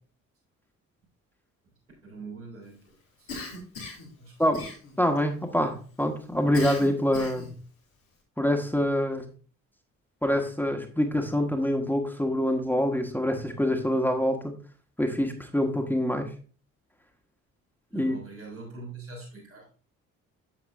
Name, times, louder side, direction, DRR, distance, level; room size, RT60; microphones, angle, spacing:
voice 1, 2.0-2.8 3.2-3.4 4.2-4.4 17.9-19.7, right 3 dB, 85° right, -7 dB, 3.9 m, -43 dB
Cough, 3.3-4.1 4.5-5.2 6.5-7.6, left 3 dB, 80° left, 2.2 m, -38 dB
voice 2, 5.0-7.5 8.4-9.3 10.2-14.6 15.0-16.3 17.9-18.1, left 1 dB, 5° left, 3 dB, 1.6 m, -25 dB
8.6 x 7.7 x 2.6 m, 0.38 s
figure-of-eight pair, 40°, 40 cm